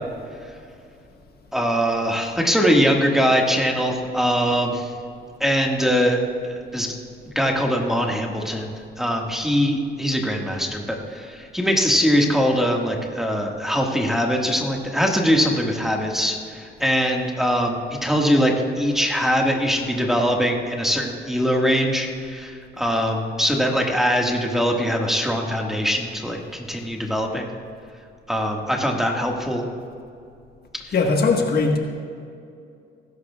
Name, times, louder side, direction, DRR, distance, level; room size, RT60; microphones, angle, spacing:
voice 1, 1.5-4.9 5.4-6.2 6.7-6.9 7.2-17.7 18.0-27.5 28.3-29.6, equal, ahead, 0 dB, 1.8 m, -22 dB
voice 2, 30.9-31.8, left 4 dB, 50° left, 2 dB, 1.5 m, -19 dB
20.5 x 11.5 x 2.4 m, 2.4 s
cardioid pair, 90°, 20 cm